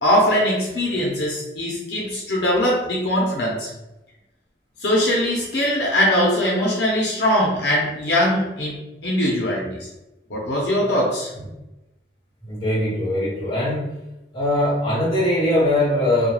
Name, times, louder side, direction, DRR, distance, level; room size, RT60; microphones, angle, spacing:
voice 1, 0.0-3.7 4.8-9.9 10.3-11.3, equal, 70° left, -3 dB, 0.6 m, -21 dB
voice 2, 12.4-13.9 14.3-16.3, left 1 dB, 30° left, -7 dB, 1.0 m, -21 dB
2.3 x 2.2 x 3.0 m, 0.96 s
head